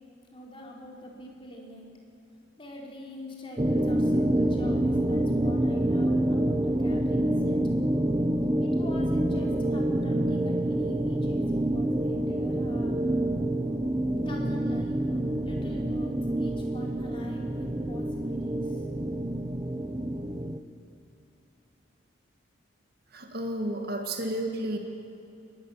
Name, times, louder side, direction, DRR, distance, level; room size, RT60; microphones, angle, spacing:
voice 1, 0.3-1.9 2.6-7.6 8.6-13.0 14.2-18.9, left 1 dB, 25° left, -1 dB, 4.0 m, -44 dB
sound 1, 3.6-20.6, right 1 dB, 20° right, 0.9 m, -27 dB
voice 2, 23.1-24.8, right 1 dB, 50° right, 3 dB, 1.9 m, -31 dB
23.0 x 19.0 x 7.2 m, 2.8 s
head